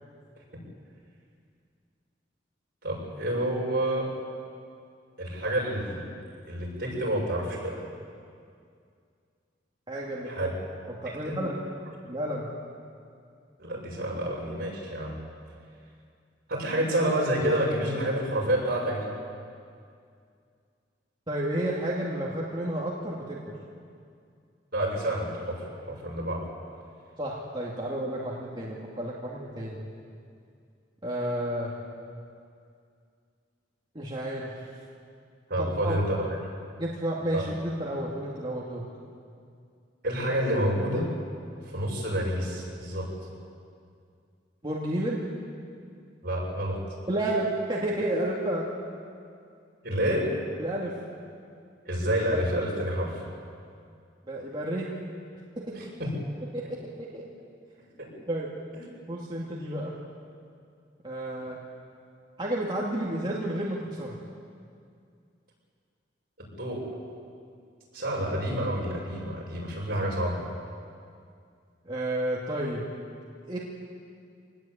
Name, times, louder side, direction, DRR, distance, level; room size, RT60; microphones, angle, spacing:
voice 1, 2.8-4.1 5.2-6.0 6.5-7.8 10.3-10.5 11.2-11.4 13.6-15.1 16.5-19.1 24.7-26.4 35.5-36.3 37.3-37.4 40.0-41.1 41.7-43.1 46.2-46.8 49.8-50.2 51.9-53.2 55.7-56.1 58.0-58.1 66.6-66.8 67.9-70.4, right 1 dB, 55° right, -3 dB, 7.3 m, -28 dB
voice 2, 9.9-10.3 11.0-11.5 12.1-12.5 21.3-23.6 27.2-29.8 31.0-31.7 33.9-34.7 35.6-36.0 36.8-38.8 44.6-45.2 47.1-48.7 50.6-50.9 54.3-54.9 55.6-55.8 56.5-57.2 58.3-58.5 59.1-59.9 61.0-61.6 62.4-64.2 71.8-72.8 73.5-73.6, right 1 dB, 25° right, -5 dB, 2.4 m, -31 dB
24.5 x 19.5 x 8.8 m, 2.3 s
head